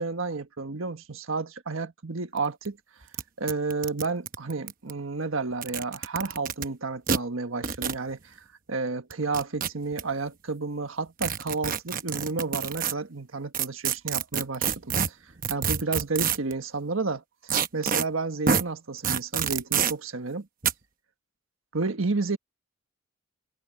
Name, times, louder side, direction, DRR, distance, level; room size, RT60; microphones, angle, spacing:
voice 1, 0.0-2.8 3.4-8.2 8.7-15.2 15.5-17.2 17.7-20.4 21.7-22.4, right 3 dB, 75° right, 1.4 m, -31 dB
sound 1, 2.4-2.5 2.7-2.8 3.1-3.2 3.5-4.9 5.5-6.7 7.1-7.2 7.6-8.0 9.1-10.0 11.2-12.9 13.5-16.5 17.5-18.0 18.5-18.6 19.0-19.9 20.6-20.7, right 7 dB, 40° right, 1.0 m, -27 dB
head